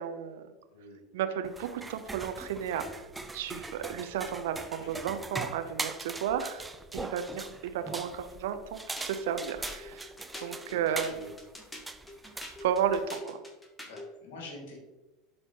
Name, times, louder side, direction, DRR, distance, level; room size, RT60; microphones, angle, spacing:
voice 1, 0.0-0.5 1.1-3.1 3.3-6.7 6.9-10.1 10.4-11.2 12.6-13.4, right 8 dB, 65° right, 9 dB, 0.6 m, -33 dB
sound 1, 1.4-13.1, right 2 dB, 10° right, 0.5 m, -41 dB
sound 2, 9.0-14.1, left 1 dB, 10° left, 1.3 m, -45 dB
voice 2, 10.7-11.3 13.8-14.8, left 1 dB, 60° left, 0 dB, 2.3 m, -46 dB
11.0 x 4.2 x 2.9 m, 1.1 s
figure-of-eight pair, 75°, 0 cm